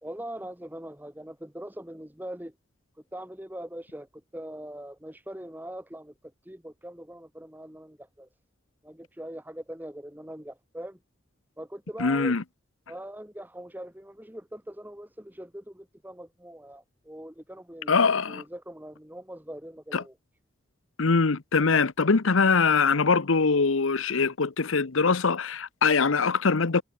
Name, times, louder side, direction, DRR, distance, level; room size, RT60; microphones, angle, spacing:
voice 1, 0.0-2.5 3.1-4.1 4.3-6.1 6.4-8.3 8.8-11.0 11.6-12.3 12.9-18.0 18.3-20.1, right 1 dB, 10° right, 1.7 m, -41 dB
voice 2, 12.0-12.4 17.9-18.4 19.9-20.0 21.0-26.8, left 4 dB, 80° left, 0.9 m, -23 dB
head